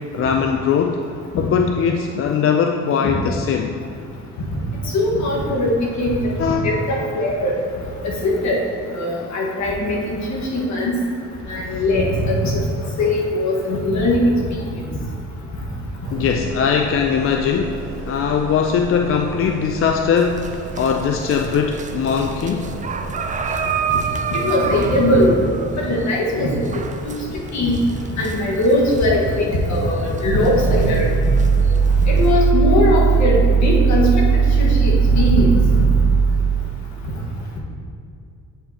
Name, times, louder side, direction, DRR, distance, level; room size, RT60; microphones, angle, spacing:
voice 1, 0.1-1.1 1.4-3.7 4.8-5.0 6.4-6.7 11.7-11.8 16.1-22.7, left 6 dB, 45° left, 3 dB, 0.4 m, -20 dB
voice 2, 4.9-5.7 6.0-6.3 6.6-7.6 8.0-8.6 8.9-10.9 11.5-12.6 13.0-14.6 24.3-25.3 25.7-26.5 27.0-27.1 27.5-27.8 28.2-31.1 32.0-35.7, left 1 dB, 65° left, -3 dB, 1.5 m, -20 dB
sound 1, 16.0-23.6, right 3 dB, 50° right, 1.6 m, -34 dB
sound 2, 20.2-32.5, right 6 dB, 25° right, 0.4 m, -30 dB
sound 3, 30.3-36.4, right 6 dB, 80° right, 0.7 m, -17 dB
8.8 x 5.4 x 2.8 m, 2.4 s
cardioid pair, 90°, 30 cm